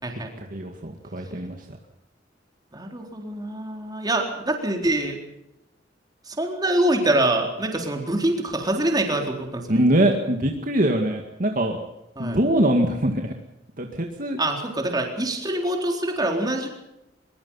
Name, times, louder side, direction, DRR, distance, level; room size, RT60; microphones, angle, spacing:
voice 1, 0.4-1.8 9.7-11.8 12.2-13.3 13.8-14.4, right 1 dB, 50° right, 3 dB, 2.0 m, -23 dB
voice 2, 2.7-5.2 6.3-9.9 12.2-12.4 14.4-16.7, right 1 dB, 20° right, 2 dB, 4.0 m, -25 dB
23.0 x 22.5 x 5.6 m, 0.89 s
head